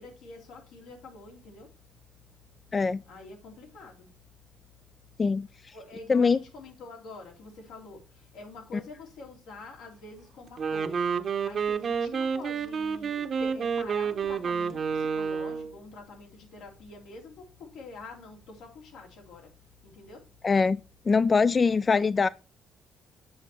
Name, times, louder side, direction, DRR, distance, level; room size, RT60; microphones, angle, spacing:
voice 1, 0.0-1.7 3.1-4.1 5.7-11.1 11.4-19.5 19.8-20.2, left 3 dB, 90° left, 3.2 m, -46 dB
voice 2, 2.7-3.0 5.2-5.5 6.1-6.4 20.4-20.8 21.1-22.3, left 4 dB, 35° left, 0.3 m, -22 dB
Wind instrument woodwind instrument, 10.5-15.7, right 6 dB, 50° right, 0.9 m, -29 dB
7.8 x 6.7 x 4.4 m
cardioid pair, 90°, 0 cm